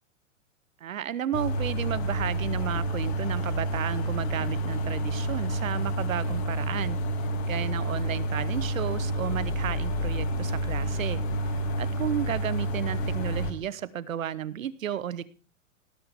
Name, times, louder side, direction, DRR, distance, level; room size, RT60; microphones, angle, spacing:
voice 1, 0.8-7.0 7.4-15.2, right 10 dB, 85° right, 17 dB, 1.0 m, -33 dB
sound 1, 1.3-13.5, right 1 dB, 55° left, 2.2 m, -29 dB
18.0 x 8.9 x 3.5 m, 0.38 s
hypercardioid pair, 125°, 39 cm